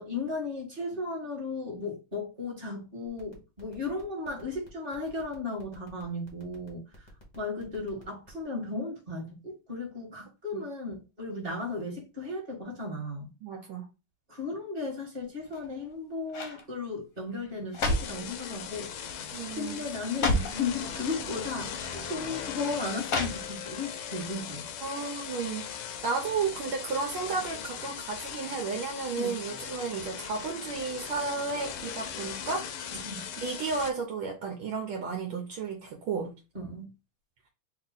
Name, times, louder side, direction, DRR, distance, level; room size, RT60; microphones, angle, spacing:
voice 1, 0.0-7.1 7.3-13.3 14.3-24.7 29.1-29.4 32.9-33.2 36.5-36.9, left 3 dB, 25° right, 1.6 m, -35 dB
sound 1, 3.1-8.4, equal, 25° left, 0.6 m, -54 dB
voice 2, 13.4-13.9 19.3-19.9 24.8-25.7 26.0-32.8 33.4-36.3, right 5 dB, 75° right, 1.5 m, -33 dB
sound 2, 15.4-15.9 16.3-16.6 17.4-18.2 19.0-19.3 19.6-19.7 20.0-20.6 21.6-21.7 23.0-23.8 24.2-24.3, left 1 dB, 55° left, 1.0 m, -30 dB
sound 3, 17.8-33.9, left 8 dB, 80° left, 1.4 m, -39 dB
3.6 x 2.9 x 3.7 m
omnidirectional pair, 2.4 m